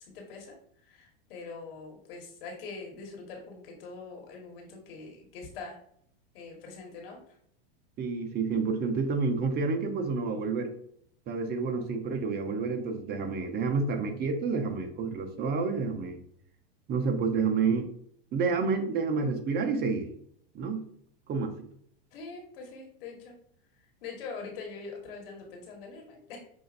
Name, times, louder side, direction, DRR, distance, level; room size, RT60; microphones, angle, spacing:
voice 1, 0.1-0.5 0.9-5.8 6.3-7.2 22.1-23.3 24.0-26.4, left 4 dB, 70° left, 0 dB, 1.6 m, -43 dB
voice 2, 8.0-10.7 11.3-16.2 16.9-17.9 18.3-20.1 20.5-20.8 21.3-21.6, right 4 dB, 35° right, 5 dB, 0.8 m, -29 dB
6.3 x 2.6 x 2.6 m, 0.67 s
hypercardioid pair, 110°, 30 cm